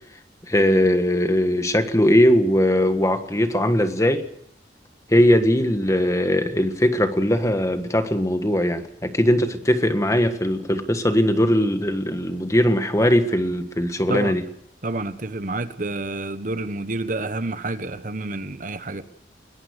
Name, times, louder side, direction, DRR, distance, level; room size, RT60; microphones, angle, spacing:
voice 1, 0.5-4.2 5.1-14.4, equal, 20° left, 8 dB, 1.6 m, -20 dB
voice 2, 14.8-19.0, right 2 dB, 50° right, 11 dB, 1.2 m, -29 dB
21.5 x 20.5 x 6.6 m, 0.71 s
head